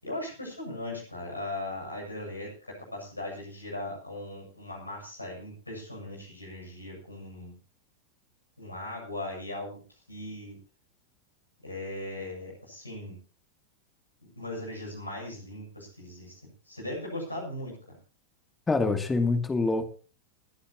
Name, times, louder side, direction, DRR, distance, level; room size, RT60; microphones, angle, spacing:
voice 1, 0.0-7.5 8.6-9.8 10.1-10.6 11.6-13.2 14.4-16.4 16.7-18.0, left 1 dB, 85° left, 0 dB, 7.9 m, -38 dB
voice 2, 18.7-19.9, left 3 dB, 15° left, 7 dB, 2.6 m, -25 dB
30.0 x 10.0 x 2.9 m, 0.36 s
figure-of-eight pair, 90°, 0 cm